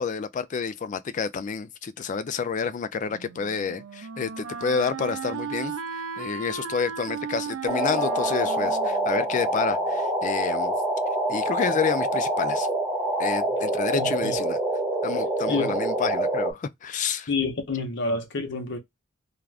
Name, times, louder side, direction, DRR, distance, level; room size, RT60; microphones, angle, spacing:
voice 1, 0.0-5.7 6.2-10.8 11.3-12.7 13.2-14.6 15.0-17.3, left 5 dB, 35° left, 0.3 m, -29 dB
Wind instrument woodwind instrument, 3.1-9.9, right 6 dB, 75° right, 0.5 m, -36 dB
sound 1, 7.7-16.5, right 1 dB, 10° right, 0.8 m, -26 dB
voice 2, 13.9-14.4 15.5-15.8 17.3-18.8, left 3 dB, 60° left, 0.8 m, -28 dB
2.4 x 2.4 x 3.2 m
head